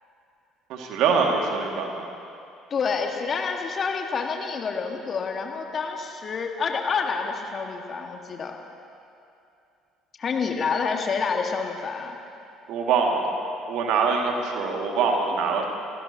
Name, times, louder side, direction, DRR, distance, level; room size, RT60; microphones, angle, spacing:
voice 1, 0.7-2.1 12.7-13.3 13.7-15.6, right 5 dB, 60° right, 1 dB, 2.0 m, -24 dB
voice 2, 2.7-8.6 10.2-12.1, left 5 dB, 40° left, 3 dB, 1.5 m, -28 dB
25.0 x 16.5 x 2.8 m, 2.6 s
figure-of-eight pair, 55°, 0 cm